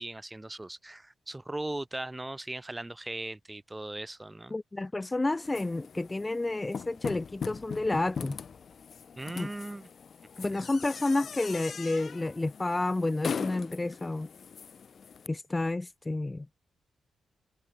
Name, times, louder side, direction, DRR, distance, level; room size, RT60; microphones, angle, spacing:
voice 1, 0.0-4.6 9.2-9.9 10.4-10.5, right 2 dB, 15° right, 4.5 m, -38 dB
voice 2, 4.5-8.4 9.3-9.5 10.4-14.3 15.3-16.5, left 2 dB, 25° left, 1.1 m, -30 dB
sound 1, 5.4-15.3, left 6 dB, 60° left, 2.8 m, -40 dB
supercardioid pair, 55°, 0 cm